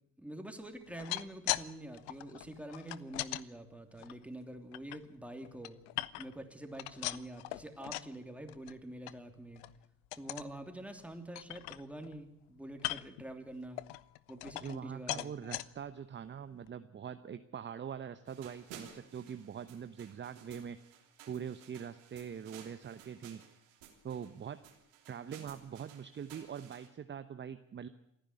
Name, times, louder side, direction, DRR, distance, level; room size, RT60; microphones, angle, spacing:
voice 1, 0.2-5.8 6.1-9.6 10.2-13.8 14.3-15.4, right 1 dB, 5° right, 5 dB, 3.0 m, -46 dB
sound 1, 0.8-1.7 1.9-3.4 4.0-5.0 5.4-6.4 6.7-8.2 8.5-8.8 9.1-9.2 9.6-9.8 10.1-10.5 11.0-11.1 11.4-12.2 12.8-13.2 13.8-14.8 15.1-15.7 16.3-16.4 16.7-16.8, left 19 dB, 70° left, 0.8 m, -39 dB
voice 2, 14.6-21.0 21.3-23.4 24.0-24.6 25.1-27.9, right 8 dB, 30° right, 11 dB, 0.9 m, -43 dB
sound 2, 18.3-26.9, right 8 dB, 75° right, 3.3 m, -56 dB
28.0 x 10.0 x 9.6 m, 0.78 s
hypercardioid pair, 60°, 39 cm